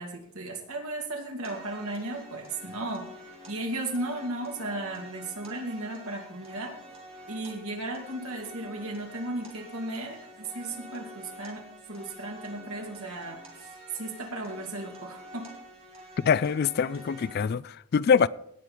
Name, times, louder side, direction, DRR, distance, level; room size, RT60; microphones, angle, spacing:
voice 1, 0.0-3.0 3.5-6.7 7.3-11.6 11.9-15.5, right 2 dB, 85° right, 2.5 m, -35 dB
sound 1, 1.4-17.5, right 1 dB, 25° right, 2.7 m, -48 dB
voice 2, 16.2-18.3, left 6 dB, 45° left, 0.3 m, -24 dB
17.5 x 6.1 x 5.2 m
head